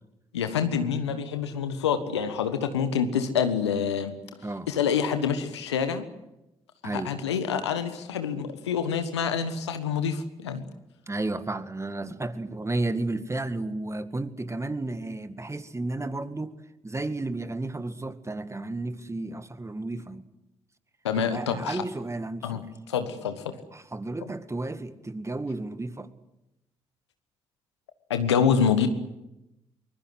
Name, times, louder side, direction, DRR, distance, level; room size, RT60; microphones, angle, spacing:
voice 1, 0.3-4.1 4.7-6.0 6.9-10.6 21.0-21.8 22.4-22.6 22.9-23.4 28.1-28.9, left 7 dB, 90° left, 9 dB, 1.3 m, -26 dB
voice 2, 6.8-7.2 11.1-16.5 16.8-20.3 21.2-22.7 23.7-26.1, right 2 dB, 20° right, 11 dB, 2.0 m, -32 dB
24.0 x 21.0 x 7.9 m, 0.92 s
hypercardioid pair, 40°, 14 cm